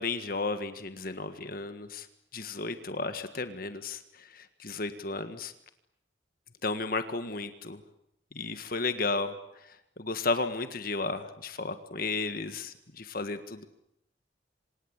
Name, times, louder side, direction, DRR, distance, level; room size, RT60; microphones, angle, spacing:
voice 1, 0.0-2.1 2.3-5.5 6.6-7.8 8.3-13.7, left 3 dB, 50° left, 9 dB, 1.7 m, -34 dB
27.5 x 26.0 x 8.2 m, 0.77 s
head